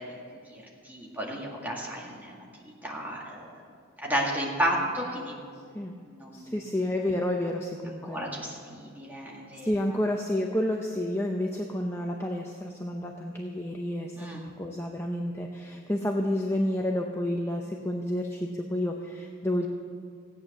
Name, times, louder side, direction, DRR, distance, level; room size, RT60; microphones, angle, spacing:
voice 1, 0.5-3.5 4.0-5.3 6.1-6.5 8.0-9.7 14.2-14.4, equal, 10° right, -3 dB, 2.0 m, -33 dB
voice 2, 6.3-8.2 9.6-19.7, left 1 dB, 10° left, 1 dB, 0.6 m, -30 dB
16.0 x 8.9 x 6.7 m, 2.2 s
head